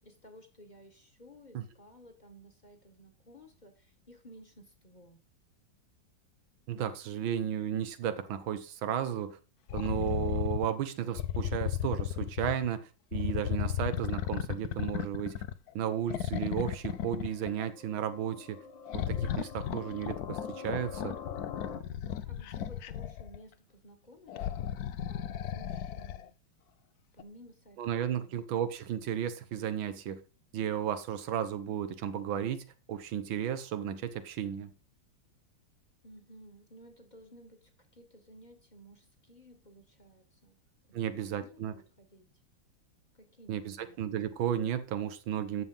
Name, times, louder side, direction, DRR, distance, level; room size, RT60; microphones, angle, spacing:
voice 1, 0.0-5.3 22.2-24.7 25.1-26.4 27.1-28.3 36.0-40.6 40.9-42.3 43.1-44.0, equal, 25° left, 1.6 m, -55 dB
voice 2, 6.7-9.4 9.7-12.8 13.1-15.4 15.7-18.6 18.9-21.2 27.8-30.2 30.5-34.7 40.9-41.7 43.5-45.6, right 9 dB, 90° right, 1.8 m, -34 dB
sound 1, 9.7-10.7 11.2-12.7 13.1-15.7 16.1-17.7 18.9-23.4 24.3-26.3 27.2-27.3, left 11 dB, 65° left, 1.0 m, -35 dB
sound 2, 16.7-21.8, left 6 dB, 80° left, 1.8 m, -45 dB
10.5 x 7.3 x 5.6 m
omnidirectional pair, 2.1 m